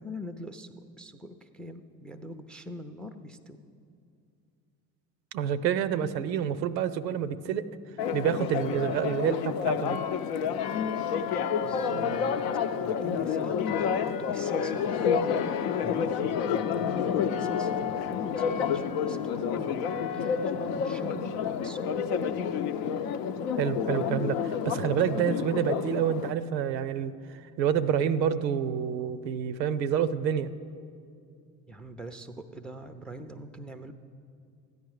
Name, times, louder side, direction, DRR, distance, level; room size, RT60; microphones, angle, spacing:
voice 1, 0.0-3.6 11.6-12.4 12.8-21.8 31.7-33.9, equal, ahead, 10 dB, 0.4 m, -43 dB
voice 2, 5.3-7.7 8.1-10.0 23.6-30.5, right 8 dB, 90° right, 14 dB, 0.6 m, -28 dB
Church bell, 8.0-26.3, left 7 dB, 70° left, 0.7 m, -29 dB
13.5 x 9.4 x 4.8 m, 2.4 s
hypercardioid pair, 65°, 49 cm